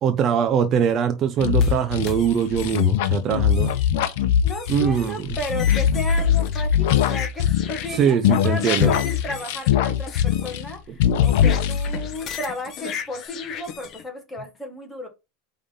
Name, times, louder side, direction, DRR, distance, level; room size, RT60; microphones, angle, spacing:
voice 1, 0.0-3.7 4.7-5.3 7.9-8.9, right 8 dB, 30° right, 0.5 m, -22 dB
sound 1, 1.4-7.9 8.2-10.7 11.0-12.1, left 9 dB, 65° left, 0.8 m, -21 dB
sound 2, 1.6-2.9 3.5-3.9 4.5-14.0, left 8 dB, 30° left, 0.8 m, -37 dB
voice 2, 4.4-15.1, left 1 dB, 10° left, 1.4 m, -33 dB
5.1 x 3.5 x 5.5 m
supercardioid pair, 165°, 0 cm